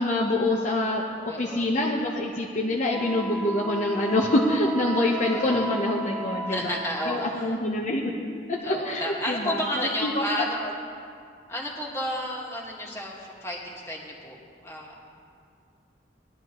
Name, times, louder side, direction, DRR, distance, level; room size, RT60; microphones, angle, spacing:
voice 1, 0.0-6.7 7.1-8.1 8.5-9.6 10.0-10.2, left 1 dB, 40° left, -3 dB, 0.9 m, -25 dB
voice 2, 1.3-1.7 5.3-5.6 6.5-7.6 8.6-10.6 11.5-14.4 14.6-15.0, equal, 15° left, -3 dB, 1.9 m, -32 dB
Wind instrument woodwind instrument, 2.9-7.3, right 2 dB, 5° right, 1.7 m, -35 dB
20.0 x 11.5 x 3.1 m, 2.2 s
head